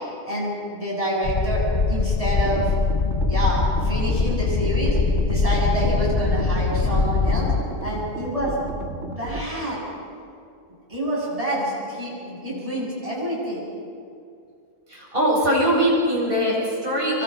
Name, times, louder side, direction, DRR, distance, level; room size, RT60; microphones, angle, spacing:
voice 1, 0.2-1.6 1.9-2.7 3.3-5.0 5.3-7.5 7.8-8.5 9.0-9.8 10.9-13.6, right 1 dB, 25° right, -5 dB, 8.1 m, -27 dB
sound 1, 1.2-7.6, left 4 dB, 35° left, 0.8 m, -22 dB
sound 2, 2.4-9.5, right 2 dB, 70° right, 2.3 m, -33 dB
voice 2, 14.9-17.2, equal, 45° right, -5 dB, 8.1 m, -21 dB
27.5 x 23.5 x 5.1 m, 2.4 s
omnidirectional pair, 1.3 m